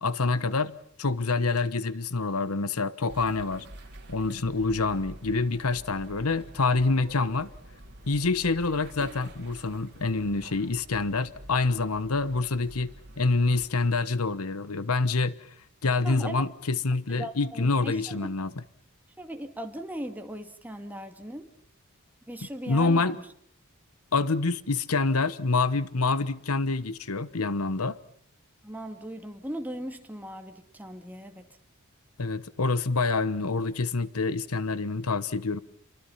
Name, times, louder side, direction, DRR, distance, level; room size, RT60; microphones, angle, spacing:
voice 1, 0.0-0.7 1.0-3.7 4.1-7.5 8.1-15.4 15.8-18.5 22.7-23.2 24.1-28.0 32.2-35.6, left 3 dB, 90° left, 1.1 m, -26 dB
sound 1, 3.1-13.7, right 1 dB, 50° right, 4.4 m, -47 dB
voice 2, 16.0-16.4 17.1-18.3 19.2-21.5 22.3-23.2 28.6-31.5, equal, 10° right, 2.3 m, -38 dB
29.0 x 24.0 x 5.7 m
head